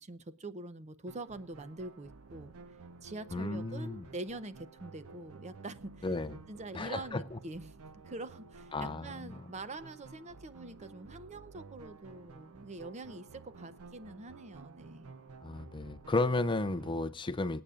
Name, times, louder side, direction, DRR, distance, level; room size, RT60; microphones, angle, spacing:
voice 1, 0.0-2.5 3.0-6.1 6.5-15.1, right 2 dB, 30° right, 12 dB, 0.6 m, -45 dB
sound 1, 1.1-17.1, right 4 dB, 75° right, 0.7 m, -53 dB
voice 2, 3.3-4.1 6.0-6.4 6.7-7.4 8.7-9.4 15.4-17.6, left 2 dB, 20° left, 12 dB, 0.5 m, -33 dB
26.0 x 8.7 x 2.4 m, 0.33 s
head